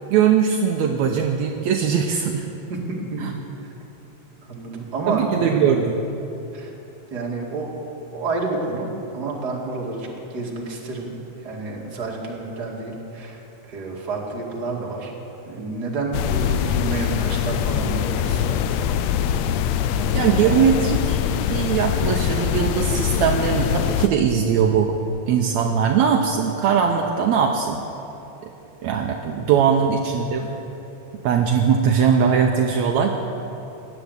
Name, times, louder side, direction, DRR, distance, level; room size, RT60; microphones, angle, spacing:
voice 1, 0.1-2.5 3.2-3.3 5.1-6.0 20.1-21.2 21.5-25.0 25.3-27.8 28.4-28.5 28.8-30.5 31.2-33.1, right 7 dB, 75° right, 2 dB, 2.0 m, -20 dB
voice 2, 2.7-3.3 3.6-3.7 4.4-5.7 6.5-6.7 7.1-7.7 8.1-11.1 11.4-15.1 15.4-19.0 19.8-20.8 29.7-29.9, right 3 dB, 35° right, -2 dB, 2.5 m, -30 dB
sound 1, 16.1-24.1, left 9 dB, 75° left, 1.7 m, -23 dB
17.0 x 10.5 x 8.0 m, 3.0 s
omnidirectional pair, 3.4 m